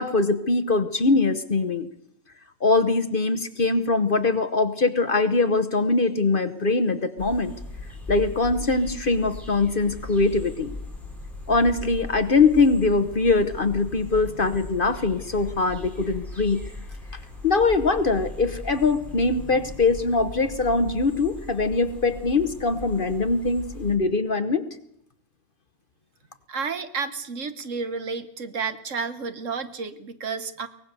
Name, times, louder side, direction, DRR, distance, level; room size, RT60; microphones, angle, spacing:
voice 1, 0.0-1.9 2.6-7.5 8.1-10.7 11.5-16.6 17.4-24.6, left 3 dB, 40° left, 10 dB, 1.0 m, -22 dB
sound 1, 7.2-24.0, left 2 dB, ahead, 5.2 m, -39 dB
voice 2, 26.5-30.7, right 5 dB, 60° right, 11 dB, 1.5 m, -31 dB
23.5 x 18.5 x 6.8 m, 0.73 s
omnidirectional pair, 1.5 m